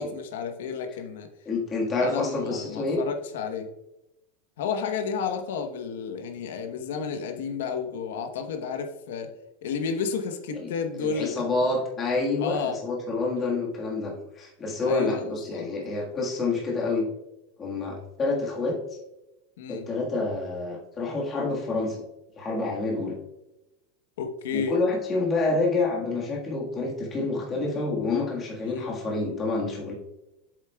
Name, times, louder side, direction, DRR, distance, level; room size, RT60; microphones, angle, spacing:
voice 1, 0.0-1.3 2.0-3.7 4.6-9.3 9.6-11.4 12.4-12.8 14.9-15.7 19.6-19.8 24.2-24.7 28.6-28.9, left 6 dB, 90° left, 6 dB, 1.0 m, -31 dB
voice 2, 1.4-3.0 10.5-17.1 17.6-18.8 19.7-22.0 22.4-23.2 24.5-29.9, left 3 dB, 15° left, -2 dB, 1.6 m, -28 dB
8.1 x 7.2 x 2.3 m, 0.92 s
supercardioid pair, 180°, 0 cm